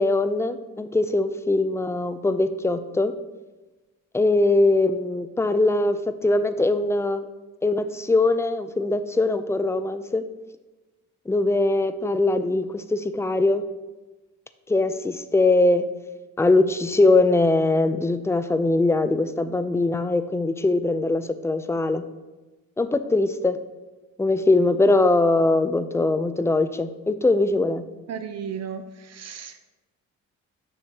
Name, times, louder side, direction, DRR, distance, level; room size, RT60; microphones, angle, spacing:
voice 1, 0.0-3.1 4.1-7.2 7.6-10.2 11.3-13.6 14.7-15.9 16.4-22.1 22.8-23.6 24.2-27.8, left 2 dB, 10° left, 11 dB, 0.4 m, -21 dB
voice 2, 28.1-29.6, right 7 dB, 60° right, 9 dB, 0.6 m, -35 dB
9.9 x 6.3 x 2.8 m, 1.2 s
cardioid pair, 90°, 30 cm